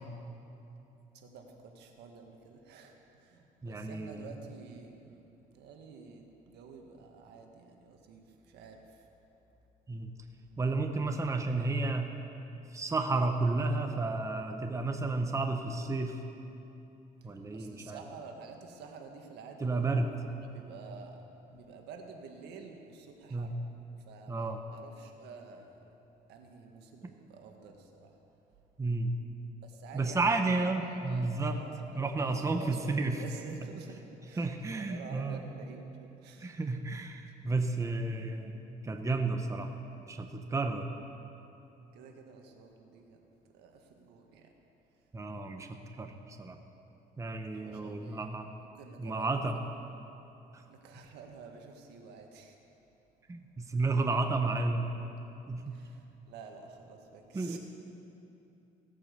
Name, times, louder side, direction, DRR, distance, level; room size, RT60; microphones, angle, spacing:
voice 1, 1.1-5.2 5.5-9.1 17.2-21.2 21.5-23.6 24.1-25.8 26.3-28.2 29.6-36.5 41.9-44.5 44.9-45.1 47.5-48.3 48.6-49.4 50.6-52.6 55.7-57.6, right 4 dB, 80° right, 3 dB, 1.6 m, -50 dB
voice 2, 3.6-4.2 9.9-10.1 10.6-12.1 12.7-16.2 17.2-18.0 19.6-20.1 23.3-23.5 24.3-24.6 28.8-29.1 29.9-31.6 32.0-33.2 34.4-35.4 36.4-39.7 40.1-40.9 45.1-45.7 46.0-46.6 47.2-48.5 49.0-49.5 53.3-55.0 55.5-55.8 57.3-57.6, right 3 dB, 20° right, 5 dB, 0.9 m, -32 dB
16.5 x 8.8 x 6.8 m, 2.9 s
cardioid pair, 110°, 17 cm